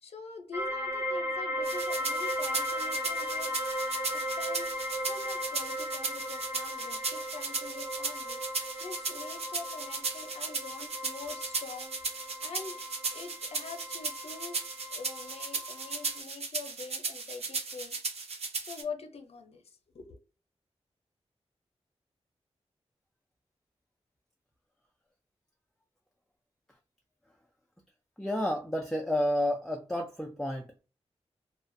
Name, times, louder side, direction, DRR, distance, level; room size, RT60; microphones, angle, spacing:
voice 1, 0.0-4.7 5.0-12.8 13.1-18.0 18.6-20.2, left 4 dB, 65° left, 0.6 m, -45 dB
sound 1, 0.5-16.2, equal, 30° right, 0.7 m, -37 dB
sound 2, 1.6-18.8, right 4 dB, 65° right, 0.6 m, -36 dB
voice 2, 28.2-30.8, left 1 dB, 5° left, 0.3 m, -30 dB
2.4 x 2.1 x 2.5 m
wide cardioid pair, 120°, 11 cm